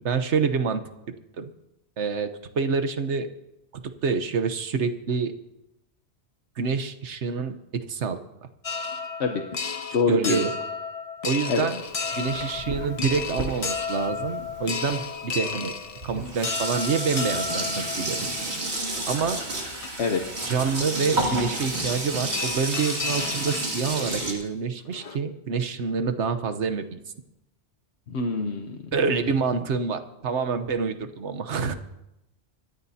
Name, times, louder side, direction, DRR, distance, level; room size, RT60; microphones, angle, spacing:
voice 1, 0.0-1.5 2.0-3.3 4.0-5.4 6.6-8.2 10.1-10.5 11.2-11.8 12.2-15.8 16.0-18.2 19.1-19.4 20.5-27.0 28.9-31.7, right 5 dB, 90° right, 9 dB, 1.3 m, -27 dB
sound 1, 8.6-18.7 19.4-19.5 19.8-19.9 21.9-22.0 22.3-24.0 24.4-24.5 24.8-25.2, left 5 dB, 40° left, 0.6 m, -33 dB
voice 2, 9.9-10.4 11.5-11.7 20.0-20.2 28.1-28.8, left 5 dB, 75° left, 4 dB, 1.2 m, -25 dB
Sink (filling or washing), 11.8-14.9 15.7-15.8 16.0-24.3, right 2 dB, 70° right, 2.8 m, -31 dB
25.5 x 14.0 x 2.8 m, 0.88 s
omnidirectional pair, 1.1 m